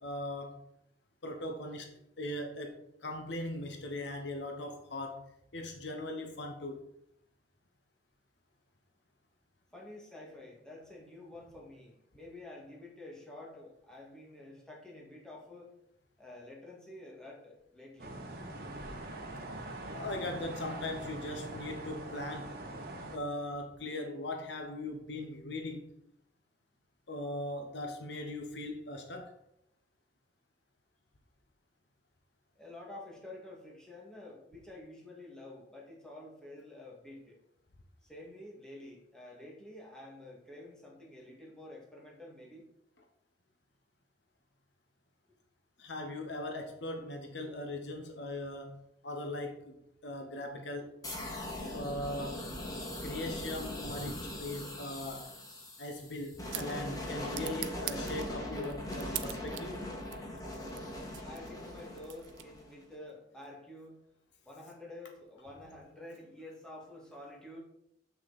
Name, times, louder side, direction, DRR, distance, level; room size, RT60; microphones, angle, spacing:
voice 1, 0.0-0.6 1.2-5.2 5.5-6.8 19.9-22.5 23.1-25.9 27.1-29.3 45.8-49.7 50.0-51.0 51.7-52.5 53.0-55.3 55.8-59.8, left 1 dB, 70° left, 4 dB, 1.0 m, -39 dB
voice 2, 9.7-15.7 16.2-18.2 32.6-37.4 38.0-42.7 61.2-64.0 64.4-67.6, left 1 dB, 5° left, -4 dB, 2.1 m, -49 dB
sound 1, 18.0-23.2, right 2 dB, 55° right, 1.2 m, -43 dB
sound 2, 51.0-62.8, left 1 dB, 20° left, 1.6 m, -40 dB
sound 3, 55.9-62.8, right 14 dB, 85° right, 0.5 m, -46 dB
7.3 x 6.2 x 4.2 m, 0.77 s
head